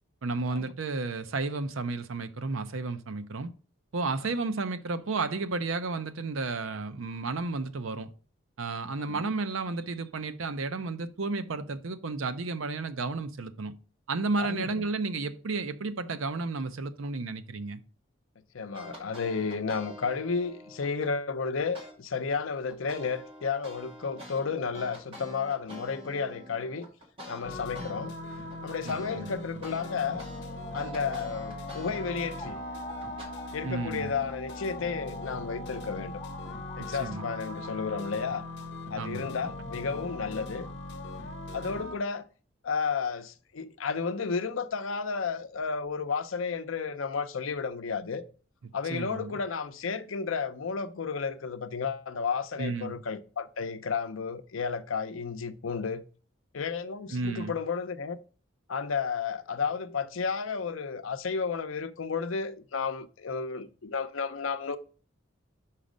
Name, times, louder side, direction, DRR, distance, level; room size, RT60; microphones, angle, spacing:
voice 1, 0.2-3.5 3.9-8.1 8.6-13.7 14.1-17.8 28.9-29.3 33.6-34.1 37.0-37.3 39.0-39.3 48.9-49.4 52.6-53.0 57.1-57.6, right 3 dB, 85° right, 0.6 m, -32 dB
voice 2, 9.0-9.3 14.4-14.8 18.5-26.9 27.3-28.1 28.6-30.3 30.7-32.6 33.5-36.2 36.8-38.5 38.9-40.7 41.5-42.3 42.6-48.2 48.7-56.0 56.5-58.2 58.7-64.8, left 5 dB, 85° left, 0.6 m, -32 dB
sound 1, 18.7-21.1 21.7-21.9 22.3-27.9 28.3-33.3, equal, 25° right, 2.1 m, -47 dB
sound 2, 27.4-42.0, left 1 dB, 55° left, 0.8 m, -40 dB
sound 3, 30.5-41.4, left 2 dB, 10° left, 2.1 m, -45 dB
5.7 x 5.2 x 5.0 m
head